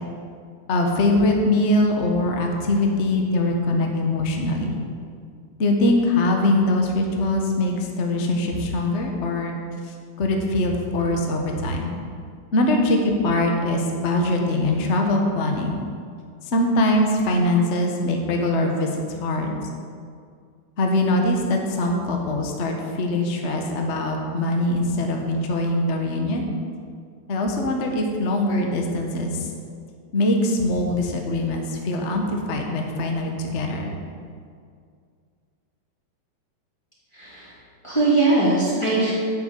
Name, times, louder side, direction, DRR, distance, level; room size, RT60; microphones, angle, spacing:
voice 1, 0.7-4.7 5.6-9.6 9.9-11.9 12.5-15.7 16.4-18.9 19.2-19.6 20.8-26.4 27.3-29.5 30.1-33.9, left 1 dB, 50° left, 2 dB, 0.8 m, -22 dB
voice 2, 37.1-37.5 37.8-39.1, right 2 dB, 10° left, -9 dB, 3.3 m, -20 dB
9.9 x 7.0 x 8.3 m, 2.2 s
omnidirectional pair, 3.4 m